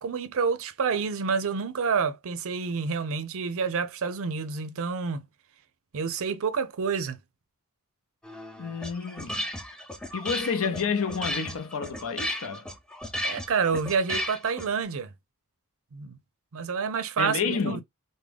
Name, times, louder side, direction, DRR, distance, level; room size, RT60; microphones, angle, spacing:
voice 1, 0.0-5.3 5.9-7.2 13.2-15.1 15.9-16.2 16.5-17.8, right 5 dB, 65° right, 0.5 m, -28 dB
sound 1, 8.2-14.8, equal, 5° left, 0.5 m, -35 dB
voice 2, 8.6-9.5 10.1-12.7 17.2-17.8, left 5 dB, 70° left, 0.6 m, -30 dB
3.6 x 2.1 x 3.3 m
head